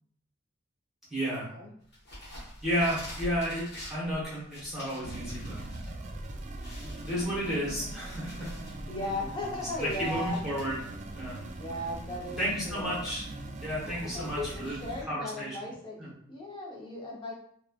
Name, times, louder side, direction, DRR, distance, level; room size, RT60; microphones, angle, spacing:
voice 1, 1.1-1.5 2.6-5.6 7.0-8.5 9.8-10.8 11.1-11.4 12.4-13.2 13.6-14.8 15.1-15.5 16.0-16.1, equal, ahead, -9 dB, 1.0 m, -32 dB
sound 1, 1.9-5.9 6.2-6.3 6.6-8.8 9.3-10.6, equal, 60° left, 1.1 m, -45 dB
sound 2, 5.0-15.0, right 1 dB, 35° right, 0.4 m, -41 dB
voice 2, 6.8-7.1 8.9-10.4 11.6-12.4 12.7-13.0 13.9-17.3, left 2 dB, 25° left, -2 dB, 0.7 m, -37 dB
3.0 x 2.2 x 2.3 m, 0.63 s
head